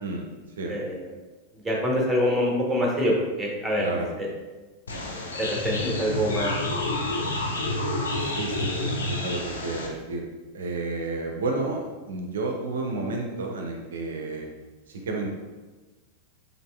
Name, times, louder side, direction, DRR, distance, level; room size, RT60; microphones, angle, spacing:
voice 1, 0.7-1.1 1.5-4.3 5.4-6.5, equal, ahead, -3 dB, 0.8 m, -25 dB
voice 2, 3.8-4.1 8.2-10.2 10.5-14.5 14.9-15.3, right 3 dB, 65° right, 2 dB, 0.4 m, -31 dB
sound 1, 4.9-9.9, left 2 dB, 70° left, 0.5 m, -29 dB
4.0 x 3.3 x 2.3 m, 1.2 s
figure-of-eight pair, 90°, 0 cm